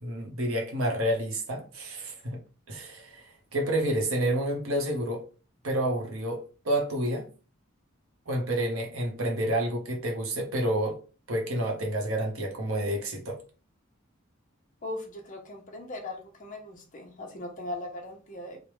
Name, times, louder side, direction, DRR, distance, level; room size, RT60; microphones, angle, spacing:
voice 1, 0.0-2.4 2.7-5.2 5.6-7.3 8.3-11.0 11.3-13.4, right 1 dB, 80° right, 0.9 m, -29 dB
voice 2, 14.8-18.6, left 2 dB, 40° left, 0.7 m, -39 dB
3.3 x 2.1 x 3.0 m
head